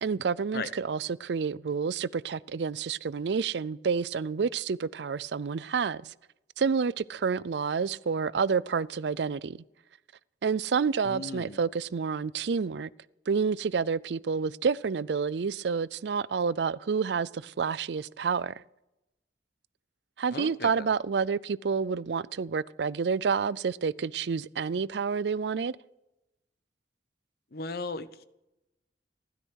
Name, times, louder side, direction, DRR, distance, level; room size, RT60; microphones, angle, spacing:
voice 1, 0.0-6.1 6.6-9.6 10.4-12.9 13.3-18.6 20.2-25.8, right 5 dB, 70° right, 0.4 m, -29 dB
voice 2, 11.0-11.6 20.3-20.9 27.5-28.2, left 3 dB, 60° left, 0.9 m, -36 dB
16.0 x 13.0 x 6.4 m
head